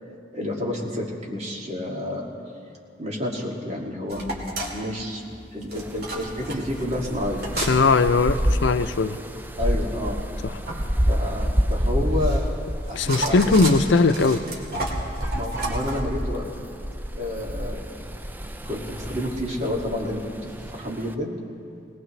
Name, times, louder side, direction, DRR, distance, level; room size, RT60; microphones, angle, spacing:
voice 1, 0.3-2.3 3.0-4.3 4.7-5.2 5.5-7.4 9.5-10.2 11.1-12.5 12.9-13.7 15.3-16.5 17.1-17.8 18.7-21.3, left 1 dB, 35° right, -3 dB, 2.3 m, -30 dB
sound 1, 4.1-16.0, right 2 dB, 55° right, 2.4 m, -33 dB
sound 2, 5.8-21.1, equal, 10° right, 0.5 m, -29 dB
voice 2, 7.6-9.2 12.9-14.4, left 3 dB, 85° left, 10 dB, 0.6 m, -19 dB
20.0 x 19.0 x 3.2 m, 2.4 s
head